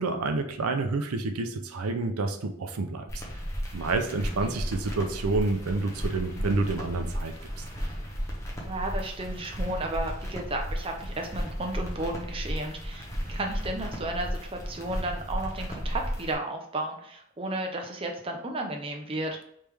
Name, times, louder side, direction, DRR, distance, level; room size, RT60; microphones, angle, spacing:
voice 1, 0.0-3.2 3.7-7.6, right 3 dB, 90° right, 6 dB, 0.5 m, -29 dB
sound 1, 3.1-16.3, equal, 15° left, 0.8 m, -34 dB
voice 2, 8.6-19.4, right 2 dB, 25° right, 2 dB, 0.5 m, -33 dB
3.4 x 3.2 x 3.3 m, 0.71 s
head